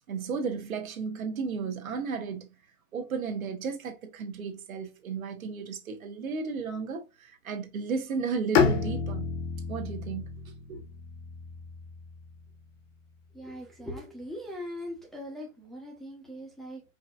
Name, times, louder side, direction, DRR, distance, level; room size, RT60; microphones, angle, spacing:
voice 1, 0.1-2.5 2.9-9.2 9.7-10.2 10.7-10.8, right 5 dB, 80° right, 1.4 m, -34 dB
Bowed string instrument, 8.5-12.5, left 5 dB, 50° left, 1.0 m, -30 dB
voice 2, 13.3-16.8, equal, ahead, 0.9 m, -40 dB
5.0 x 2.8 x 2.5 m
hypercardioid pair, 140°, 41 cm